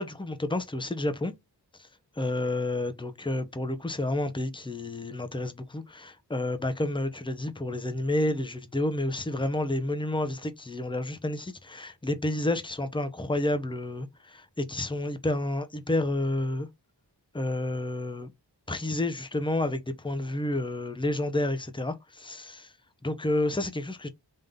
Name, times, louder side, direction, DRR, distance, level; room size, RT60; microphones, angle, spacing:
voice 1, 0.0-1.3 2.2-16.7 17.3-18.3 18.7-22.7 23.0-24.1, left 1 dB, 10° left, 0.7 m, -30 dB
3.7 x 2.6 x 3.5 m
wide cardioid pair, 50°, 42 cm